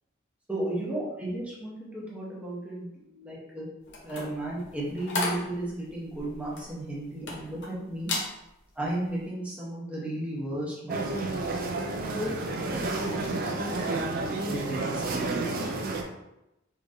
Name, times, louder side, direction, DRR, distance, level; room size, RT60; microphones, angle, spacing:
voice 1, 0.5-3.7 4.0-8.1 8.7-11.5 12.1-15.7, right 1 dB, 5° right, -6 dB, 0.9 m, -35 dB
sound 1, 3.9-7.7 8.0-8.3 8.8-9.1, left 2 dB, 60° left, 0.7 m, -34 dB
sound 2, 10.9-16.0, right 2 dB, 45° right, 0.4 m, -30 dB
3.7 x 3.0 x 2.6 m, 0.88 s
head